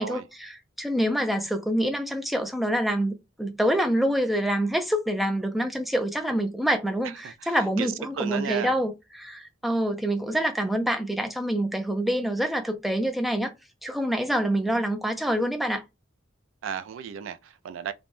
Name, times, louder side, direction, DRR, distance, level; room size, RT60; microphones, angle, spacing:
voice 1, 0.0-13.5 13.8-15.8, equal, ahead, 0.3 m, -26 dB
voice 2, 7.0-8.8 16.6-17.9, right 8 dB, 75° right, 0.3 m, -34 dB
3.4 x 2.1 x 2.4 m
head